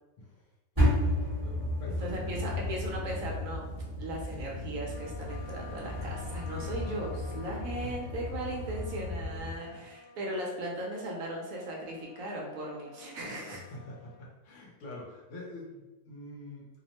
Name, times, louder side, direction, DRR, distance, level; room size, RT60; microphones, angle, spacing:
voice 1, 0.2-0.5 1.4-2.5 7.7-7.9 9.5-9.9 13.5-16.7, left 1 dB, 60° left, -3 dB, 0.9 m, -46 dB
sound 1, 0.8-9.6, left 1 dB, 15° right, 0.9 m, -33 dB
voice 2, 1.9-3.6 4.0-13.6, right 1 dB, 70° right, -2 dB, 0.9 m, -37 dB
Trumpet, 4.9-14.2, left 4 dB, 80° left, 1.1 m, -52 dB
2.8 x 2.0 x 2.8 m, 1.1 s
omnidirectional pair, 1.7 m